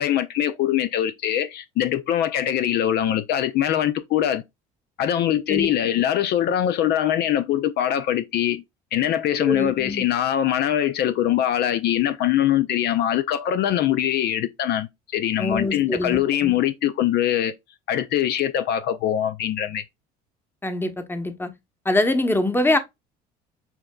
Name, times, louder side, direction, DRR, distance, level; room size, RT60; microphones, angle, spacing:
voice 1, 0.0-4.4 5.0-8.6 8.9-17.5 17.9-19.8, left 11 dB, 55° left, 0.4 m, -22 dB
voice 2, 9.4-10.0 15.4-16.6 20.6-21.5 21.8-22.8, left 2 dB, 10° left, 0.9 m, -24 dB
6.9 x 2.6 x 2.2 m
supercardioid pair, 75°, 20 cm